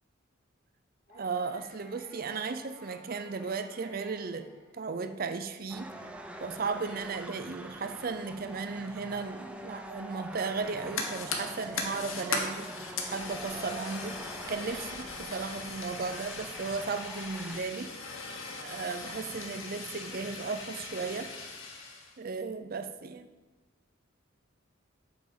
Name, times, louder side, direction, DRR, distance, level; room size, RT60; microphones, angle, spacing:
sound 1, 1.1-5.3, equal, 40° left, 3.1 m, -54 dB
voice 1, 1.1-5.9 6.4-14.2 14.5-17.9 18.6-21.3 22.2-23.3, right 4 dB, 45° right, 10 dB, 0.5 m, -35 dB
sound 2, 5.7-17.6, right 1 dB, 5° right, 0.6 m, -45 dB
Fire, 10.6-22.1, left 4 dB, 85° left, 1.4 m, -39 dB
8.1 x 5.9 x 7.6 m, 1.2 s
head